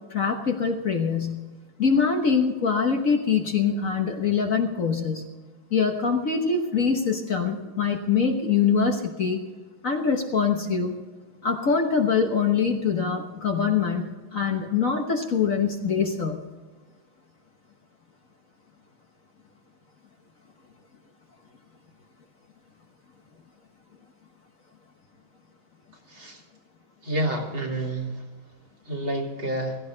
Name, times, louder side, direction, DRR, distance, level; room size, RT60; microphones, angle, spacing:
voice 1, 0.1-1.4 1.8-5.2 5.7-9.4 9.8-11.0 11.4-16.4, left 5 dB, 45° left, 3 dB, 1.3 m, -24 dB
voice 2, 26.1-26.4 27.0-28.1 28.9-29.8, right 1 dB, 70° right, 2 dB, 3.4 m, -29 dB
16.5 x 15.5 x 3.9 m, 1.3 s
omnidirectional pair, 2.3 m